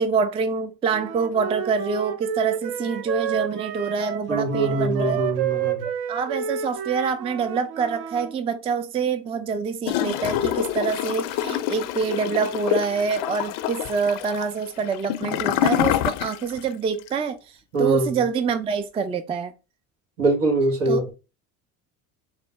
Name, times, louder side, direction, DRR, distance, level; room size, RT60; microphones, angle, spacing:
voice 1, 0.0-5.2 5.8-17.4 17.8-19.5 20.9-21.1, right 5 dB, 15° right, 0.3 m, -26 dB
Wind instrument woodwind instrument, 0.9-8.3, right 9 dB, 55° right, 0.6 m, -30 dB
voice 2, 4.3-5.8 17.7-18.2 20.2-21.1, right 2 dB, 80° right, 1.6 m, -23 dB
Gurgling / Toilet flush, 9.8-16.7 17.0-17.1, left 12 dB, 60° left, 0.5 m, -26 dB
3.7 x 2.1 x 3.4 m
hypercardioid pair, 70°, 46 cm